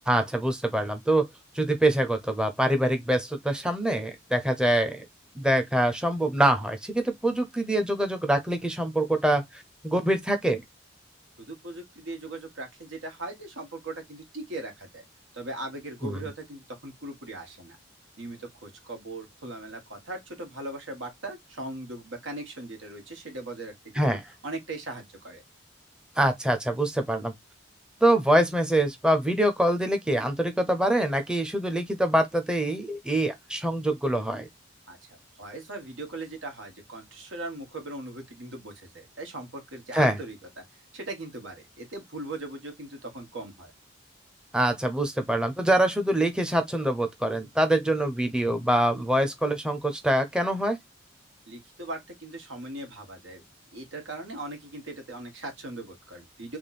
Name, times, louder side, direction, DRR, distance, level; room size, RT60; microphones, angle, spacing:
voice 1, 0.1-1.3 1.5-5.0 5.4-9.4 9.8-10.6 16.0-16.2 24.0-24.2 26.2-27.3 28.0-34.5 39.9-40.2 44.5-50.8, right 1 dB, 5° right, 0.6 m, -24 dB
voice 2, 11.4-15.0 15.3-17.8 18.2-24.0 24.4-25.4 34.9-40.6 40.9-43.7 51.5-53.4 53.7-56.6, right 2 dB, 85° right, 1.6 m, -39 dB
3.5 x 3.1 x 4.1 m
head